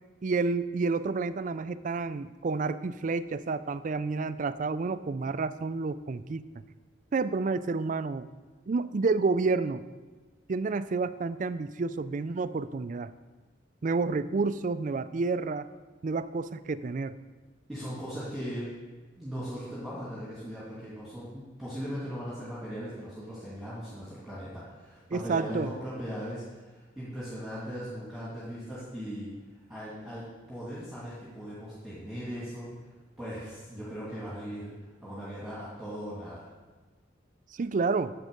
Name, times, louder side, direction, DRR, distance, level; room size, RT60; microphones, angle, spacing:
voice 1, 0.2-6.6 7.1-8.3 8.7-9.8 10.5-13.1 13.8-15.7 16.0-17.2 25.1-25.7 37.5-38.1, right 4 dB, 40° right, 14 dB, 0.4 m, -29 dB
voice 2, 17.7-18.7 19.2-29.3 29.7-32.7 33.2-34.7 35.0-36.5, equal, ahead, -9 dB, 2.3 m, -39 dB
10.5 x 7.4 x 5.2 m, 1.3 s
head